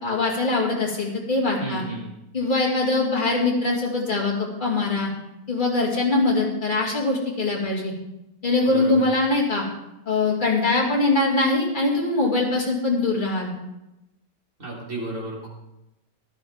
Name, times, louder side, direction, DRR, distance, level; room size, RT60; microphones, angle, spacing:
voice 1, 0.0-1.8 2.3-5.1 5.5-7.9 8.4-9.6 10.1-13.5, left 3 dB, 30° left, -3 dB, 2.7 m, -22 dB
voice 2, 1.6-2.0 8.7-9.0 14.6-15.5, right 2 dB, 45° right, -5 dB, 4.0 m, -32 dB
14.0 x 11.0 x 3.6 m, 0.91 s
omnidirectional pair, 1.8 m